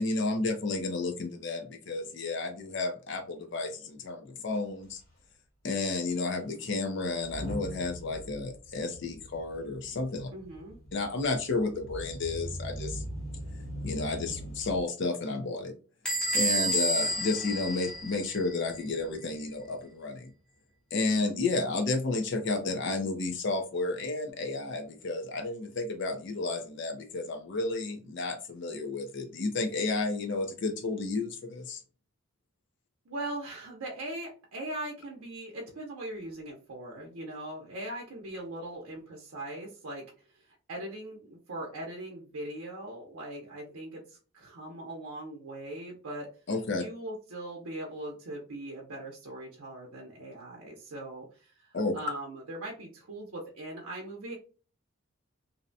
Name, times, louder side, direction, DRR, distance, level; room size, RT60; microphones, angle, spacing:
voice 1, 0.0-5.0 5.6-10.3 10.9-13.0 13.8-15.7 16.3-20.3 20.9-31.8 46.5-46.8 51.7-52.0, left 3 dB, 55° left, 5 dB, 0.5 m, -32 dB
Motor vehicle (road) / Engine starting / Accelerating revving vroom, 4.5-4.6 4.8-5.1 5.7-5.8 7.1-14.8, equal, 75° left, 1.4 m, -41 dB
voice 2, 10.3-10.8 33.1-40.0 40.4-46.3 46.7-54.3, right 1 dB, 85° right, -2 dB, 0.6 m, -40 dB
Bell / Squeak, 16.1-18.6, right 1 dB, 5° left, 0.7 m, -30 dB
2.6 x 2.1 x 2.6 m, 0.38 s
head